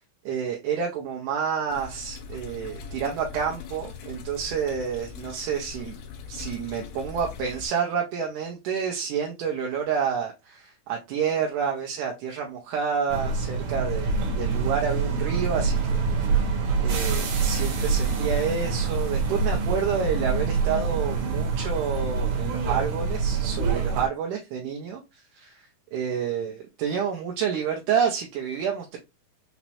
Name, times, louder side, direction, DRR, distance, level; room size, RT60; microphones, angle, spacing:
voice 1, 0.3-6.0 6.3-15.8 16.2-16.3 16.8-25.0 25.4-25.7 25.9-29.0, right 7 dB, 85° right, 0 dB, 2.2 m, -29 dB
sound 1, 1.7-7.7, left 6 dB, 85° left, 2.1 m, -41 dB
sound 2, 13.1-24.1, right 4 dB, 70° right, 2.2 m, -26 dB
sound 3, 16.8-18.2 19.3-19.8 20.4-20.8 21.6-21.9, left 2 dB, 15° right, 1.0 m, -45 dB
5.7 x 2.0 x 2.8 m, 0.23 s
omnidirectional pair, 3.5 m